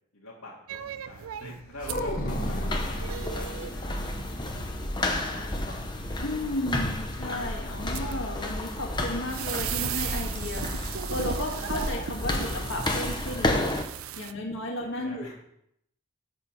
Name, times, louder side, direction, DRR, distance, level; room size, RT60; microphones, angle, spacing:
voice 1, 0.1-4.2 5.0-5.7 15.0-15.3, left 1 dB, 80° left, -7 dB, 1.9 m, -44 dB
sound 1, 0.7-14.3, right 9 dB, 75° right, 0.4 m, -39 dB
sound 2, 1.8-3.2 5.0-5.9 6.2-6.3 6.7-6.9, equal, 40° left, 1.3 m, -32 dB
sound 3, 2.3-13.8, left 1 dB, 20° left, 0.8 m, -31 dB
voice 2, 6.2-13.6 14.2-15.3, left 1 dB, 60° left, 0 dB, 1.9 m, -34 dB
7.4 x 5.5 x 6.1 m, 0.74 s
head